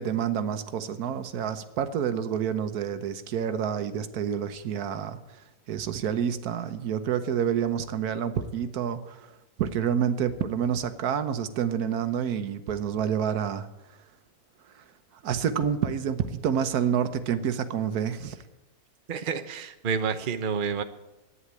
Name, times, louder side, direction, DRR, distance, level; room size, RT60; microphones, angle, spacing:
voice 1, 0.0-5.2 5.7-9.3 9.6-13.7 15.2-18.3, right 8 dB, 90° right, 10 dB, 1.4 m, -28 dB
voice 2, 19.1-20.8, right 6 dB, 40° right, 8 dB, 0.9 m, -29 dB
11.5 x 9.3 x 8.7 m, 1.0 s
omnidirectional pair, 1.6 m